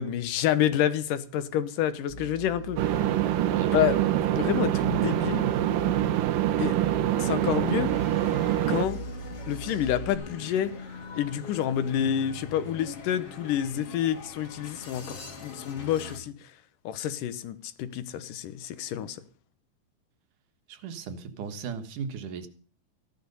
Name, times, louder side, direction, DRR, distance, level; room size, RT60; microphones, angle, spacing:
voice 1, 0.0-3.0 3.7-4.0 4.3-5.5 6.6-6.7 7.2-7.9 8.7-9.0 9.5-10.8 11.2-16.3 16.9-19.2, left 10 dB, 80° left, 2.6 m, -28 dB
sound 1, 2.1-10.1, right 2 dB, 20° left, 3.1 m, -39 dB
sound 2, 2.8-8.9, right 13 dB, 90° right, 2.7 m, -25 dB
voice 2, 3.4-3.8 20.7-22.5, right 6 dB, 75° right, 2.9 m, -36 dB
sound 3, 7.9-16.2, left 3 dB, 45° left, 3.2 m, -42 dB
15.0 x 12.0 x 5.4 m
omnidirectional pair, 3.8 m